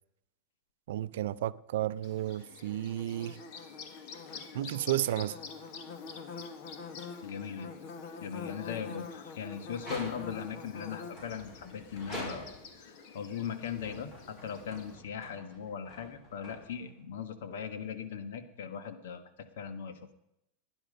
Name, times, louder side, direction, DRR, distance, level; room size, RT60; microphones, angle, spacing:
voice 1, 0.9-3.4 4.5-5.4, right 13 dB, 75° right, 0.5 m, -32 dB
Bird / Buzz, 2.0-14.9, left 5 dB, 45° left, 1.8 m, -46 dB
voice 2, 7.2-7.7 8.2-20.0, left 7 dB, 80° left, 1.6 m, -39 dB
sound 1, 9.8-10.5 11.1-12.8 13.5-17.0, equal, 25° left, 5.7 m, -46 dB
16.0 x 10.5 x 5.4 m
supercardioid pair, 160°, 0 cm